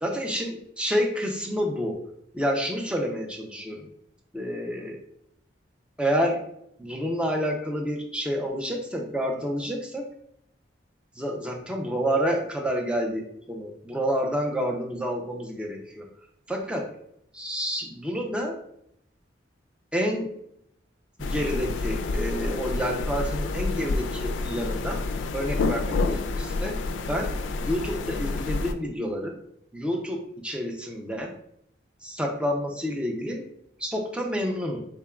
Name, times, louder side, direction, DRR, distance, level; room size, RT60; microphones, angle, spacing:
voice 1, 0.0-2.0 2.3-3.9 4.3-5.0 6.0-6.4 6.8-10.1 11.2-16.1 16.5-16.9 17.3-18.6 19.9-20.3 21.2-25.0 25.3-26.8 27.1-27.3 27.6-29.4 29.7-31.3 32.0-33.4 33.8-34.8, equal, 5° right, 1 dB, 0.5 m, -29 dB
sound 1, 21.2-28.7, left 3 dB, 80° left, 0.3 m, -29 dB
3.7 x 3.5 x 2.3 m, 0.72 s
head